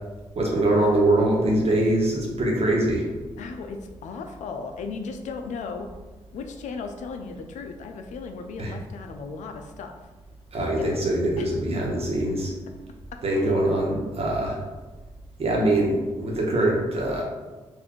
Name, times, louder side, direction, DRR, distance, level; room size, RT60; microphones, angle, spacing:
voice 1, 0.3-3.1 8.6-8.7 10.5-12.5 13.2-14.6 15.4-17.2, right 1 dB, 55° right, -2 dB, 1.1 m, -23 dB
voice 2, 3.4-5.9 6.3-9.9 10.8-11.0 11.4-11.5 13.3-13.4, left 4 dB, 85° left, 5 dB, 0.4 m, -36 dB
4.0 x 2.6 x 3.0 m, 1.2 s
cardioid pair, 60°, 12 cm